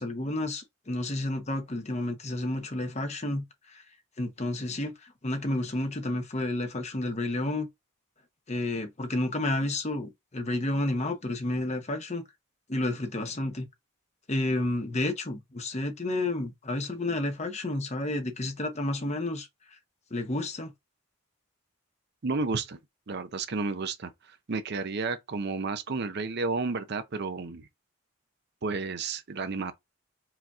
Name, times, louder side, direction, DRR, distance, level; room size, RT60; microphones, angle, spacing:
voice 1, 0.0-3.4 3.7-3.8 4.2-7.7 8.5-12.2 12.7-13.7 14.3-19.5 20.1-20.7, left 2 dB, 35° left, 0.9 m, -31 dB
voice 2, 22.2-22.8 23.1-27.7 28.6-29.7, right 4 dB, 50° right, 0.6 m, -32 dB
4.9 x 2.9 x 3.5 m
head